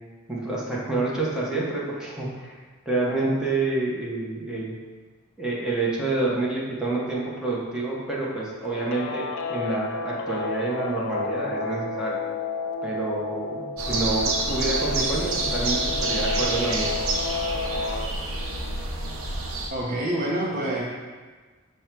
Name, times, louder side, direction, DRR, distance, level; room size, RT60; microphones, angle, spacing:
voice 1, 0.3-2.6 2.9-4.7 5.4-12.2 12.8-17.0, right 2 dB, 5° right, -6 dB, 0.8 m, -28 dB
Guitar, 8.6-18.1, left 3 dB, 65° left, 0.3 m, -31 dB
sound 1, 13.8-19.7, right 2 dB, 80° right, 0.7 m, -28 dB
voice 2, 19.7-20.8, right 1 dB, 40° right, -5 dB, 0.6 m, -26 dB
5.4 x 2.2 x 4.5 m, 1.4 s
head